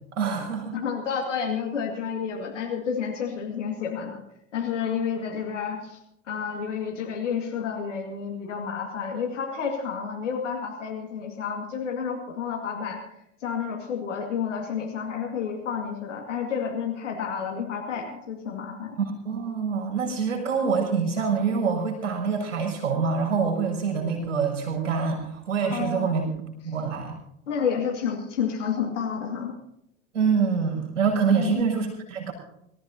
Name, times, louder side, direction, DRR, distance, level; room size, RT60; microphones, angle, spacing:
voice 1, 0.1-0.8 19.0-26.3 26.6-27.2 30.1-32.3, right 5 dB, 70° right, 0 dB, 6.7 m, -25 dB
voice 2, 0.7-4.2 4.5-6.0 6.3-13.0 13.4-19.0 25.7-26.1 27.5-29.5 31.3-31.6, left 7 dB, 70° left, 1 dB, 2.2 m, -30 dB
25.5 x 15.0 x 2.8 m, 0.81 s
figure-of-eight pair, 70°, 38 cm